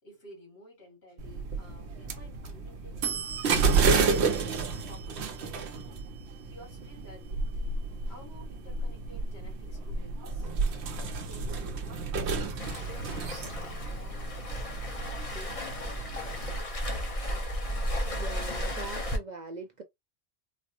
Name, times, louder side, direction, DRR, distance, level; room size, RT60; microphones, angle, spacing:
voice 1, 0.0-3.5 4.0-6.0 6.3-7.5 8.1-10.5 11.2-14.5 15.0-16.9, left 1 dB, 70° left, 2.4 m, -53 dB
sound 1, 1.2-16.6, right 4 dB, 80° right, 0.9 m, -31 dB
Waves surf, 12.6-19.2, equal, 35° left, 0.8 m, -34 dB
voice 2, 18.1-19.8, right 3 dB, 50° right, 0.6 m, -41 dB
4.1 x 2.0 x 2.9 m
omnidirectional pair, 1.1 m